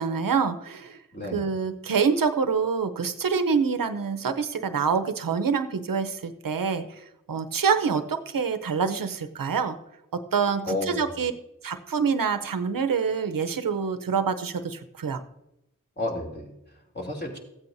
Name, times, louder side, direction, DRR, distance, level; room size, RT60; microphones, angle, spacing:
voice 1, 0.0-1.0 1.3-6.8 7.3-9.8 10.1-11.3 11.6-15.2, right 6 dB, 90° right, 9 dB, 0.7 m, -26 dB
voice 2, 1.1-1.5 10.7-11.3 16.0-17.4, left 1 dB, 30° left, -1 dB, 2.7 m, -32 dB
15.0 x 8.7 x 2.6 m, 0.86 s
cardioid pair, 40°, 33 cm